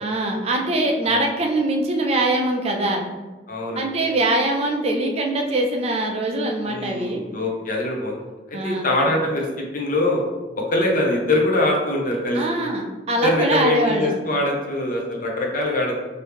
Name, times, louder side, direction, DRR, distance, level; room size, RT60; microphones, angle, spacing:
voice 1, 0.0-3.0 3.8-7.2 8.5-8.9 12.3-14.1, right 1 dB, 35° right, 2 dB, 0.4 m, -22 dB
voice 2, 3.5-3.9 6.7-8.1 8.6-9.5 9.7-10.2 10.5-12.4 13.2-15.9, left 1 dB, 50° left, -1 dB, 0.7 m, -22 dB
2.9 x 2.6 x 3.4 m, 1.2 s
head